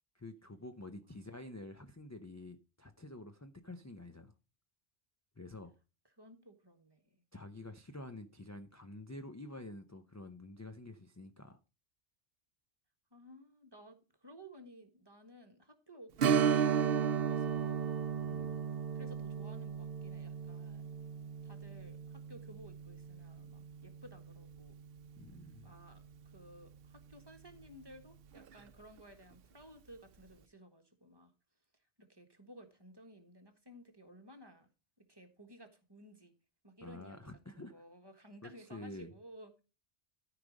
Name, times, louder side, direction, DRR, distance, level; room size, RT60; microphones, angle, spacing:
voice 1, 0.1-4.3 5.4-5.7 7.3-11.6 18.2-18.6 25.2-25.7 36.8-37.8 38.4-39.1, left 2 dB, 20° left, 0.6 m, -49 dB
voice 2, 6.2-7.1 13.1-17.9 18.9-20.9 21.4-24.8 25.6-31.3 32.0-34.7 35.1-36.3 36.6-39.5, equal, 25° right, 1.5 m, -56 dB
Strum, 16.2-25.4 25.7-25.8 28.4-28.5 29.0-29.1, right 7 dB, 70° right, 0.8 m, -35 dB
13.5 x 5.0 x 5.1 m
omnidirectional pair, 1.1 m